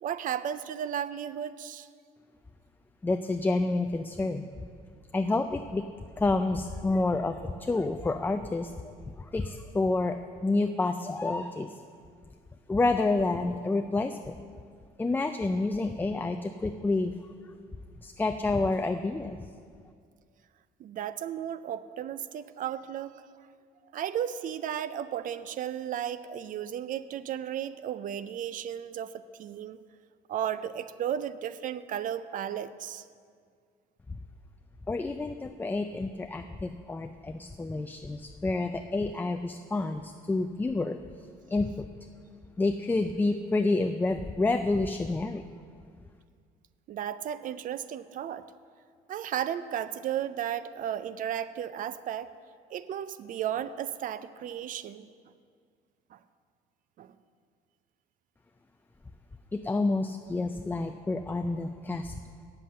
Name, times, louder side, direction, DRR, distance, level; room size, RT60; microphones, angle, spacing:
voice 1, 0.0-1.9 20.8-23.2 23.9-29.8 30.3-33.0 46.9-48.5 49.1-52.3 52.7-55.1 56.1-56.2 57.0-57.1, right 10 dB, 55° right, 15 dB, 0.5 m, -34 dB
voice 2, 3.0-4.5 5.1-5.9 6.2-11.8 12.7-14.4 15.0-17.1 18.0-19.4 34.1-34.2 34.9-41.0 41.5-41.9 42.6-45.4 59.5-62.2, left 3 dB, 10° left, 7 dB, 0.3 m, -29 dB
8.3 x 7.7 x 7.7 m, 2.1 s
cardioid pair, 110°, 17 cm